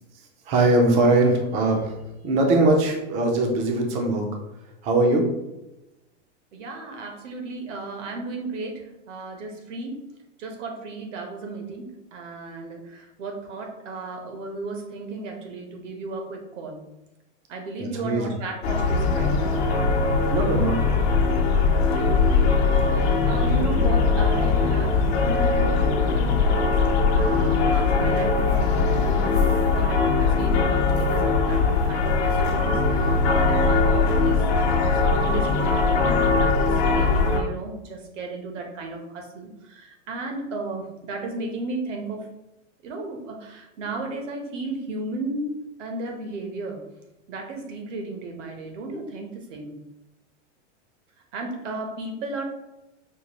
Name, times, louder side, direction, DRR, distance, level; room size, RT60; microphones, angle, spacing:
voice 1, 0.5-1.9 2.2-4.3 4.8-5.3 17.8-18.3 20.3-21.1, right 2 dB, 20° right, 2 dB, 0.4 m, -21 dB
voice 2, 6.5-10.0 10.4-16.8 17.5-19.6 21.9-26.7 27.1-42.3 42.8-45.5 45.8-46.8 47.3-49.7 51.3-52.4, right 3 dB, 80° right, 3 dB, 1.1 m, -34 dB
sound 1, 18.6-37.4, left 4 dB, 60° left, 0.8 m, -21 dB
5.1 x 2.3 x 2.9 m, 0.96 s
supercardioid pair, 155°, 37 cm